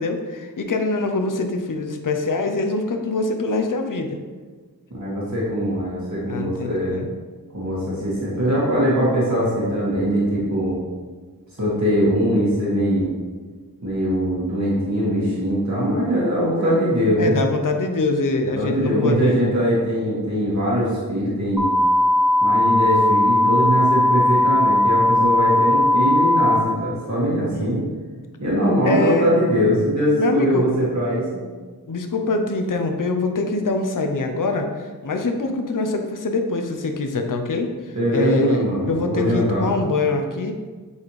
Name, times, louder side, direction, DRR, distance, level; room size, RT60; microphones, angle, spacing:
voice 1, 0.0-4.2 6.3-7.1 17.2-19.5 27.5-27.9 28.8-29.3 30.2-30.9 31.9-38.6 38.9-40.5, left 3 dB, 60° left, 5 dB, 0.6 m, -24 dB
voice 2, 4.9-7.0 7.5-10.8 11.6-13.1 13.8-17.4 18.6-21.7 22.4-27.8 28.4-31.4 38.0-39.7, equal, 50° right, -7 dB, 1.8 m, -21 dB
sound 1, 21.6-26.6, left 1 dB, 5° right, 0.9 m, -17 dB
7.1 x 4.2 x 3.2 m, 1.4 s
wide cardioid pair, 45°, 37 cm